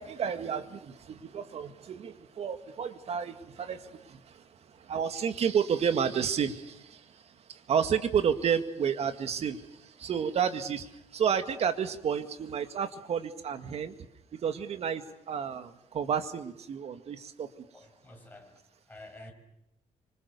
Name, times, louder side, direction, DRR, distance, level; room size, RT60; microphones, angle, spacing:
voice 1, 0.0-13.9 14.3-17.5, right 7 dB, 55° right, 9 dB, 2.0 m, -31 dB
voice 2, 17.7-19.3, left 1 dB, 15° left, 2 dB, 6.9 m, -50 dB
27.0 x 25.5 x 6.9 m, 0.81 s
cardioid pair, 115°, 13 cm